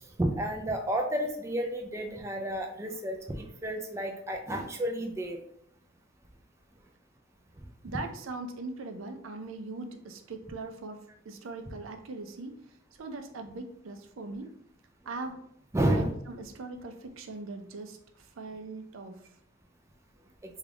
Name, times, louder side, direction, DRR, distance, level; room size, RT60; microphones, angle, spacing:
voice 1, 0.2-5.4 15.7-16.1, right 1 dB, 15° right, 2 dB, 0.4 m, -31 dB
voice 2, 7.8-12.5 13.0-14.5 15.1-15.4 15.8-19.2, right 3 dB, 80° right, 5 dB, 0.5 m, -40 dB
3.6 x 2.3 x 3.4 m, 0.69 s
head